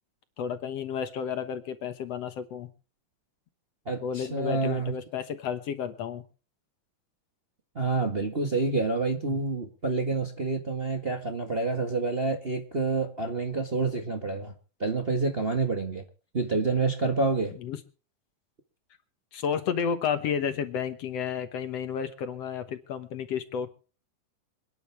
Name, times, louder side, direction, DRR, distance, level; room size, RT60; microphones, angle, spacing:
voice 1, 0.4-2.7 4.0-6.2 9.3-9.4 17.6-17.8 19.3-23.7, left 7 dB, 60° left, 1.9 m, -31 dB
voice 2, 3.8-4.9 7.7-14.5 14.8-16.0 16.3-17.5, right 3 dB, 50° right, 0.7 m, -28 dB
27.0 x 10.5 x 3.4 m
omnidirectional pair, 4.0 m